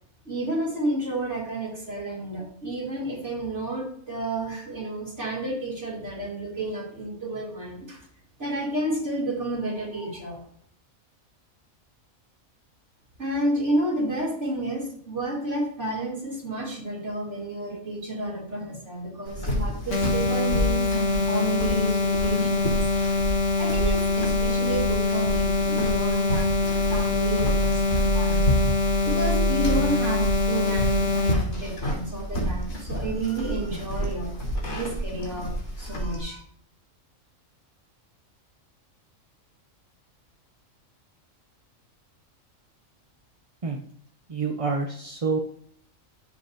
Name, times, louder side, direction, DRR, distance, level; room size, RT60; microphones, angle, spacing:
voice 1, 0.3-8.1 8.4-10.4 13.2-22.8 23.6-28.4 28.7-34.3 34.7-35.5 35.8-36.4, right 1 dB, 60° right, -4 dB, 3.5 m, -30 dB
sound 1, 19.2-36.2, right 1 dB, 80° left, 4.3 m, -29 dB
sound 2, 19.9-31.3, left 3 dB, 65° left, 1.4 m, -24 dB
voice 2, 44.3-45.4, right 4 dB, 35° right, 2 dB, 0.6 m, -27 dB
15.5 x 5.2 x 2.8 m, 0.64 s
omnidirectional pair, 1.4 m